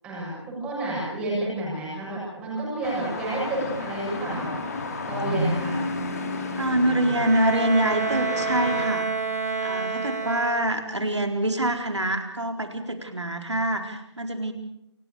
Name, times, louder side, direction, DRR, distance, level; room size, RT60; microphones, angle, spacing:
voice 1, 0.0-4.5 5.1-5.8, right 1 dB, 10° right, -6 dB, 7.2 m, -30 dB
sound 1, 2.8-8.9, left 2 dB, 35° left, 3.4 m, -31 dB
voice 2, 6.6-9.1 9.6-14.5, right 1 dB, 75° right, 5 dB, 4.2 m, -25 dB
Bowed string instrument, 6.9-11.0, right 4 dB, 35° right, 3.4 m, -29 dB
28.5 x 17.5 x 7.1 m, 0.83 s
figure-of-eight pair, 155°, 15 cm